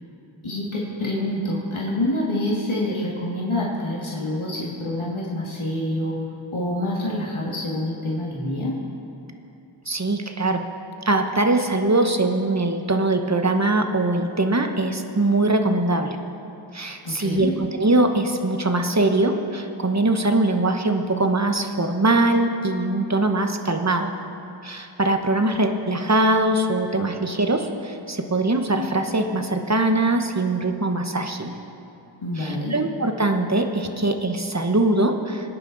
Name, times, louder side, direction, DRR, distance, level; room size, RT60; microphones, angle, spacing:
voice 1, 0.4-6.2 6.5-8.8 17.0-17.5 32.2-32.7, left 1 dB, 90° left, -5 dB, 2.1 m, -26 dB
voice 2, 9.9-10.6 11.0-16.2 16.7-24.1 24.6-31.5 32.4-35.6, right 2 dB, 35° right, 5 dB, 1.2 m, -22 dB
23.5 x 9.9 x 4.1 m, 2.7 s
wide cardioid pair, 45°, 47 cm